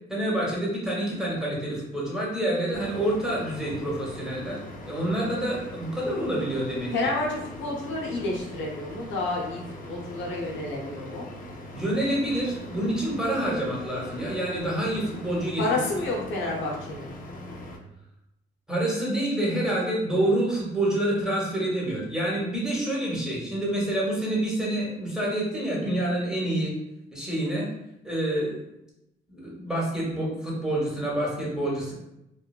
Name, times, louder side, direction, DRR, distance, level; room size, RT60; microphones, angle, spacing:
voice 1, 0.1-4.6 4.9-6.9 11.7-15.6 16.0-16.1 18.7-26.7 27.1-27.7 28.0-28.6 29.3-31.9, right 1 dB, 5° right, -5 dB, 1.1 m, -27 dB
sound 1, 2.7-17.8, left 1 dB, 45° left, 0.5 m, -41 dB
voice 2, 6.9-11.3 15.6-17.1, left 2 dB, 75° left, -2 dB, 0.7 m, -30 dB
3.2 x 2.2 x 2.3 m, 0.86 s
cardioid pair, 90°, 20 cm